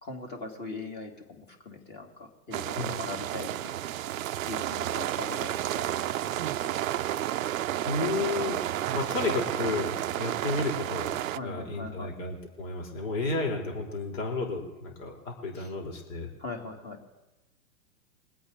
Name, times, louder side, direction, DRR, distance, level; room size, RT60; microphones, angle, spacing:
voice 1, 0.0-3.7 4.4-6.8 11.3-12.1 15.5-15.7 16.4-17.0, left 3 dB, 20° left, 1 dB, 2.7 m, -41 dB
sound 1, 2.5-11.4, right 12 dB, 60° right, 0.6 m, -31 dB
voice 2, 7.9-11.1 11.4-16.3, left 3 dB, 55° left, 1 dB, 3.7 m, -32 dB
23.5 x 8.6 x 4.1 m, 1.0 s
hypercardioid pair, 135°, 46 cm